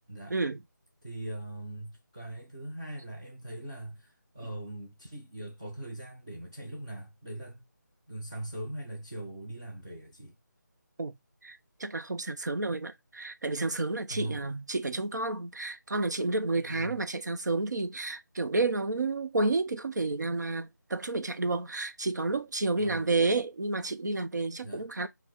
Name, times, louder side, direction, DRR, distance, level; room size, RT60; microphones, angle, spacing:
voice 1, 0.3-0.6 11.0-11.2 11.4-25.1, right 3 dB, 65° right, 0.6 m, -30 dB
voice 2, 1.0-7.6 8.1-10.3 14.1-14.5 16.6-17.0 22.8-23.2 24.6-24.9, right 1 dB, 15° right, 0.4 m, -41 dB
4.5 x 2.0 x 3.9 m
figure-of-eight pair, 170°, 10 cm